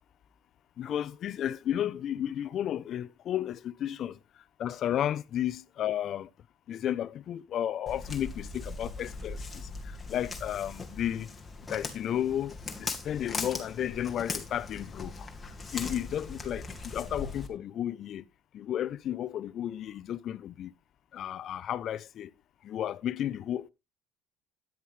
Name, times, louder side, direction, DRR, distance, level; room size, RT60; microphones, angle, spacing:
voice 1, 0.8-4.2 4.6-6.3 6.7-9.6 10.1-11.3 11.7-15.1 15.7-16.7 16.9-18.2 18.5-20.7 21.1-22.3 22.6-23.7, left 10 dB, 40° left, 0.7 m, -33 dB
Walk footsteps, 7.9-17.5, left 3 dB, 10° left, 2.2 m, -40 dB
13.0 x 10.5 x 3.3 m
cardioid pair, 150°, 0 cm